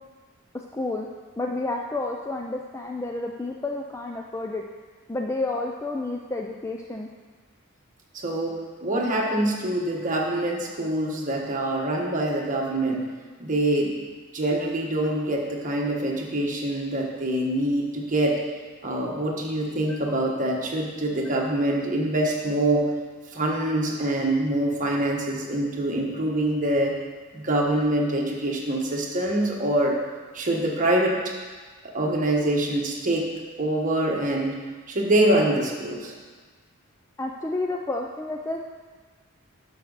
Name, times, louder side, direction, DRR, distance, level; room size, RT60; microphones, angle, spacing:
voice 1, 0.7-1.1 1.4-4.6 5.1-7.1 19.9-20.0 37.2-38.7, left 2 dB, 15° left, 1 dB, 0.4 m, -30 dB
voice 2, 8.1-13.1 13.4-14.0 14.3-18.4 18.8-22.9 23.3-27.0 27.3-30.0 30.3-31.3 31.8-33.3 33.6-34.6 34.9-36.1, right 1 dB, 40° right, -1 dB, 1.4 m, -25 dB
11.0 x 6.4 x 4.0 m, 1.4 s
head